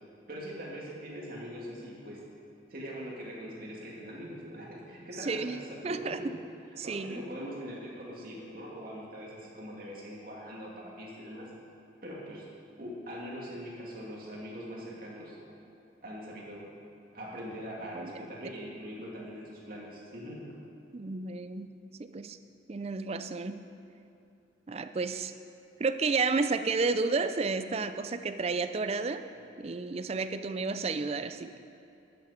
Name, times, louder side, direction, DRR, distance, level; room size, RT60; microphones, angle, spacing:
voice 1, 0.3-2.2 2.7-6.3 6.8-11.5 12.0-12.5 12.8-15.4 16.0-16.7 17.1-20.4, equal, 50° right, -4 dB, 2.5 m, -42 dB
voice 2, 5.2-6.4 6.8-7.2 17.9-18.3 20.9-22.4 22.7-23.7 24.7-25.3 25.8-29.2 29.6-31.6, right 4 dB, 35° right, 10 dB, 0.4 m, -32 dB
12.5 x 9.4 x 5.1 m, 2.7 s
head